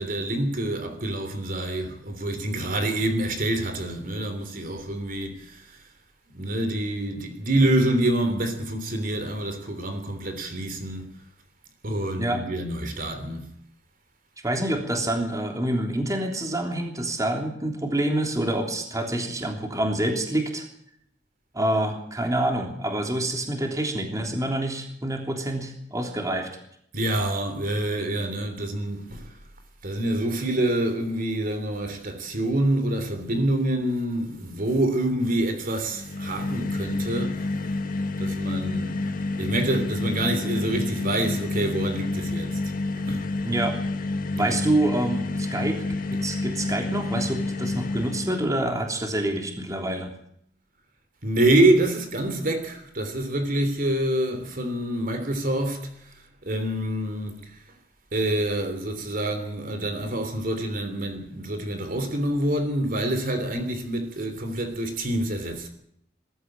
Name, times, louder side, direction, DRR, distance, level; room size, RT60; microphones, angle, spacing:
voice 1, 0.0-5.9 6.3-11.1 11.8-13.5 26.9-29.4 29.8-37.8 38.2-39.1 39.4-43.3 44.3-44.7 51.2-57.6 58.1-65.7, right 1 dB, 45° right, 3.2 m, -26 dB
voice 2, 14.4-20.7 21.5-26.5 43.4-43.8 44.4-45.8 46.1-50.1, right 1 dB, 20° right, 3.3 m, -27 dB
sound 1, 35.9-48.5, left 2 dB, 45° left, 1.7 m, -29 dB
22.0 x 13.5 x 9.0 m
head